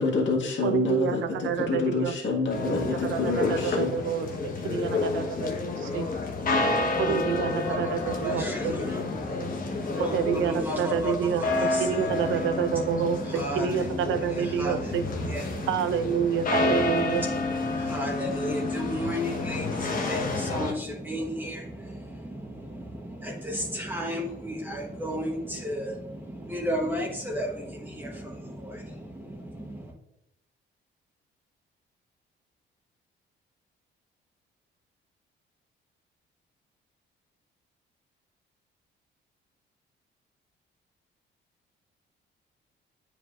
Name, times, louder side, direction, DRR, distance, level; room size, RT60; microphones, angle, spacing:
voice 1, 0.0-3.9, left 3 dB, 70° left, -2 dB, 1.7 m, -27 dB
voice 2, 0.6-2.1 2.7-6.1 7.0-8.7 10.0-15.0 15.7-17.2, right 7 dB, 75° right, 10 dB, 0.6 m, -28 dB
sound 1, 2.5-20.7, left 3 dB, 45° left, 1.0 m, -30 dB
voice 3, 6.5-29.9, equal, 10° right, -3 dB, 1.0 m, -34 dB
9.0 x 4.9 x 2.5 m, 0.85 s
cardioid pair, 90°, 20 cm